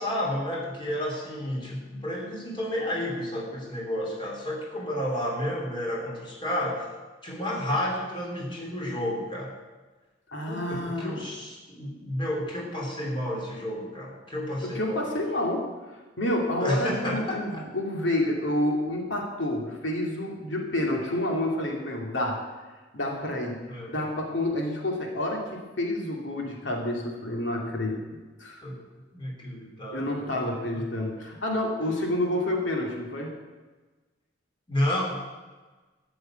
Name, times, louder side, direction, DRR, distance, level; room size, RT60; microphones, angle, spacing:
voice 1, 0.0-6.8 7.2-9.5 10.5-15.1 16.6-17.7 23.7-23.9 28.6-28.8 29.1-30.8 34.7-35.0, left 1 dB, 25° left, -2 dB, 3.3 m, -31 dB
voice 2, 10.3-11.2 14.7-15.6 16.2-22.4 22.9-23.6 23.9-28.0 28.4-28.6 29.9-33.3, left 1 dB, 85° left, 0 dB, 2.5 m, -29 dB
13.0 x 6.9 x 9.0 m, 1.3 s
head